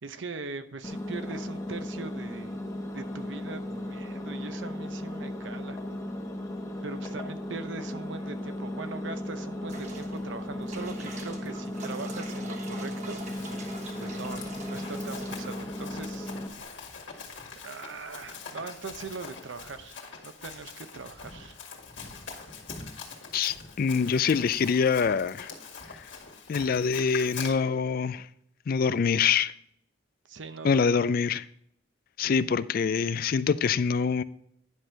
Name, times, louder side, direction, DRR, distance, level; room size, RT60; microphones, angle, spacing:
voice 1, 0.0-2.6 2.9-5.8 6.8-13.2 13.7-16.3 17.6-21.6 30.3-31.0, right 4 dB, 70° right, 0.7 m, -41 dB
Engine, 0.8-16.5, left 1 dB, 15° left, 1.0 m, -36 dB
sound 1, 9.7-16.6, right 3 dB, 40° right, 1.1 m, -45 dB
Run, 12.9-27.5, left 5 dB, 70° left, 2.0 m, -44 dB
voice 2, 23.3-25.5 26.5-28.3 28.7-29.5 30.6-31.4 32.2-34.2, left 6 dB, 50° left, 0.3 m, -25 dB
10.0 x 6.2 x 3.3 m
head